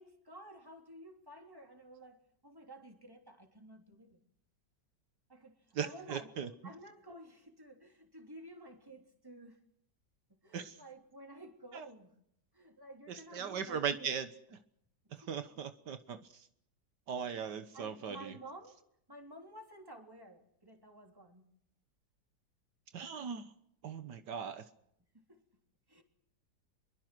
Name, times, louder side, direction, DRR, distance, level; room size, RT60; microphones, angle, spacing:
voice 1, 0.0-4.2 5.3-6.3 6.6-9.6 10.4-12.1 12.5-14.1 15.2-15.6 17.7-18.8 19.1-21.4 25.1-25.4 25.9-26.0, right 1 dB, 10° right, 3 dB, 3.4 m, -53 dB
voice 2, 5.8-6.5 10.5-10.8 11.7-11.8 13.1-14.3 15.1-16.5 17.1-18.3 22.9-23.5 23.8-24.6, right 7 dB, 80° right, 10 dB, 1.9 m, -39 dB
25.5 x 23.0 x 6.2 m, 0.73 s
omnidirectional pair, 1.8 m